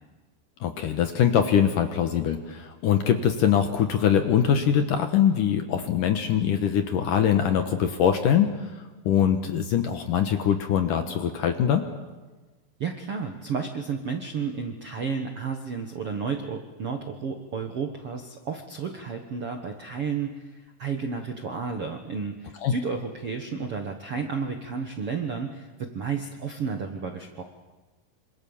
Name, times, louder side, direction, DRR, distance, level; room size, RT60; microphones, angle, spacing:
voice 1, 0.6-8.5 9.1-11.8 22.6-22.7, left 8 dB, 65° left, 7 dB, 2.3 m, -23 dB
voice 2, 12.8-27.4, right 5 dB, 60° right, 4 dB, 1.5 m, -32 dB
27.0 x 26.0 x 7.2 m, 1.3 s
omnidirectional pair, 4.9 m